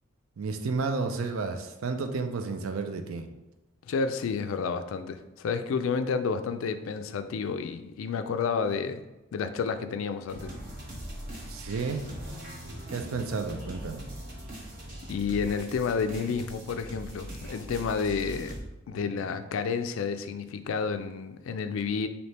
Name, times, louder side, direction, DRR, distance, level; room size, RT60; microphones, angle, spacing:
voice 1, 0.4-3.3 11.5-12.0 12.9-14.1 16.2-16.4 18.9-19.0, right 4 dB, 80° right, 7 dB, 0.4 m, -32 dB
voice 2, 3.8-9.0 9.3-10.5 15.1-18.5 18.9-22.1, left 5 dB, 70° left, 10 dB, 0.3 m, -30 dB
sound 1, 10.3-18.6, right 1 dB, 40° right, 0.9 m, -41 dB
3.3 x 2.8 x 4.1 m, 1.0 s
head